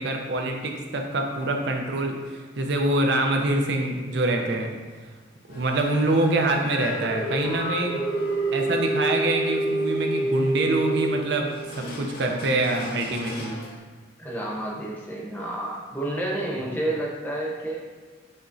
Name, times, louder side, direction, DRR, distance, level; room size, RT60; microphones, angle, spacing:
voice 1, 0.0-4.7 5.5-8.0 8.5-11.5 11.8-13.6, right 2 dB, 60° right, 2 dB, 0.5 m, -25 dB
sound 1, 5.5-13.8, right 1 dB, 50° left, 0.7 m, -29 dB
voice 2, 14.2-17.8, right 1 dB, 10° left, -4 dB, 0.7 m, -30 dB
6.3 x 3.0 x 2.6 m, 1.4 s
head